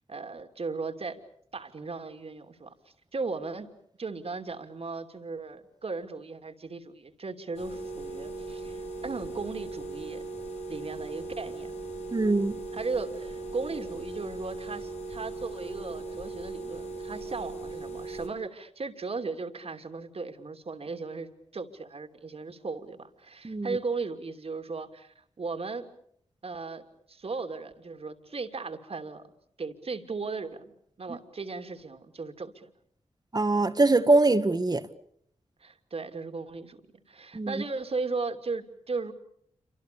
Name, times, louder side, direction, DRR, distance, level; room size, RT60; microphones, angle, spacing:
voice 1, 0.1-1.2 1.5-2.7 3.1-3.7 4.0-10.2 10.7-11.8 12.7-25.9 26.4-29.2 29.6-32.7 35.6-36.8 37.1-39.1, right 4 dB, 60° right, 2.8 m, -36 dB
sound 1, 7.5-18.3, right 3 dB, 80° left, 4.2 m, -38 dB
voice 2, 12.1-12.6 23.4-23.7 31.1-31.2 33.3-34.9 37.3-37.5, right 2 dB, 35° right, 1.6 m, -23 dB
28.0 x 25.5 x 6.9 m
cardioid pair, 60°, 12 cm